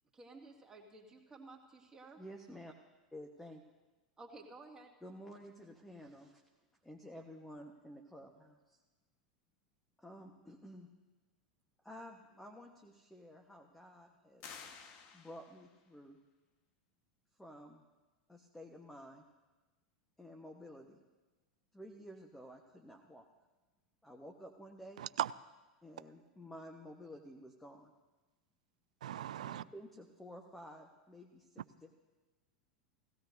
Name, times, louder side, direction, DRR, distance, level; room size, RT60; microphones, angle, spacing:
voice 1, 0.1-2.2 4.2-4.9, right 3 dB, 15° right, 2.3 m, -54 dB
voice 2, 2.2-2.7 3.1-3.6 5.0-6.4 6.8-8.8 10.0-10.9 11.8-14.4 15.1-16.2 17.4-17.9 18.3-19.2 20.2-21.0 21.7-23.3 24.0-25.1 25.8-27.9 29.4-32.0, equal, 5° left, 1.2 m, -52 dB
sound 1, 14.4-15.8, left 6 dB, 45° left, 1.3 m, -52 dB
voice 3, 25.0-25.3 29.0-29.6, right 11 dB, 70° right, 0.4 m, -37 dB
17.5 x 16.0 x 2.7 m
figure-of-eight pair, 90°, 4 cm